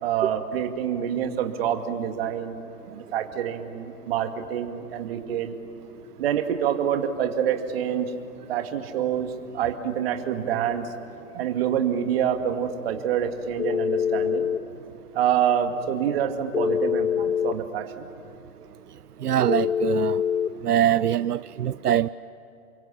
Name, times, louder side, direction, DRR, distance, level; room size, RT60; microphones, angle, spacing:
voice 1, 0.0-5.6 6.2-8.1 8.5-10.9 11.3-14.5 15.1-18.1, right 9 dB, 40° right, 6 dB, 2.3 m, -27 dB
Telephone, 13.6-14.6 16.5-17.6 19.5-20.5, left 8 dB, 85° left, 1.2 m, -24 dB
voice 2, 19.2-20.2 20.6-22.1, right 11 dB, 85° right, 16 dB, 0.7 m, -23 dB
29.0 x 23.5 x 8.7 m, 2.9 s
hypercardioid pair, 145°, 45 cm